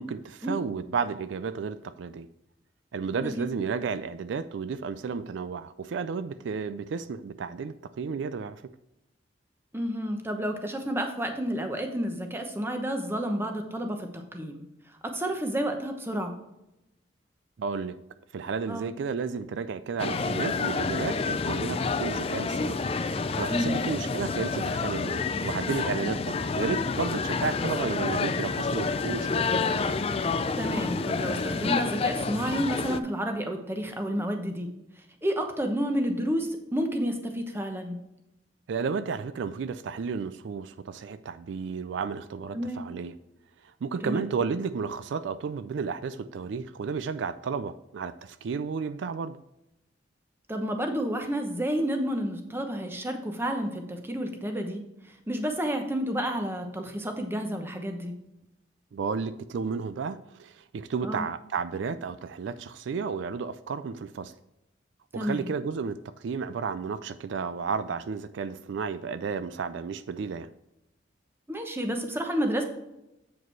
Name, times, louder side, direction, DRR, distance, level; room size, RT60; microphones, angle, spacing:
voice 1, 0.0-2.3 2.9-8.6 17.6-18.0 18.3-22.8 23.4-29.4 38.7-43.1 43.6-49.4 58.9-64.3 65.1-70.5, right 5 dB, 70° right, 13 dB, 0.3 m, -32 dB
voice 2, 3.1-3.5 9.7-14.7 15.0-16.3 18.7-18.9 23.5-23.8 30.6-34.7 35.0-38.0 42.5-42.8 44.0-44.2 50.5-54.8 55.3-58.1 61.0-61.2 65.1-65.4 71.5-72.6, equal, 10° right, 4 dB, 0.9 m, -30 dB
sound 1, 20.0-33.0, left 4 dB, 30° left, 0.3 m, -29 dB
8.1 x 4.9 x 4.5 m, 0.90 s
head